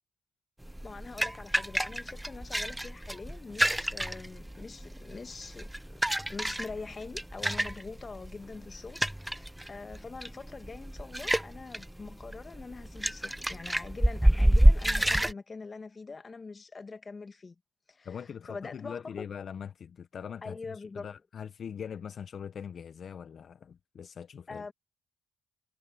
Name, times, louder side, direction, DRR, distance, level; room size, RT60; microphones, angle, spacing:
sound 1, 0.6-15.3, right 1 dB, 5° right, 0.5 m, -28 dB
voice 1, 0.8-6.0 6.3-17.5 17.9-19.3 20.4-21.1 24.5-24.7, left 4 dB, 35° left, 1.6 m, -44 dB
voice 2, 18.0-24.7, left 7 dB, 60° left, 0.8 m, -42 dB
cardioid pair, 70°, 0 cm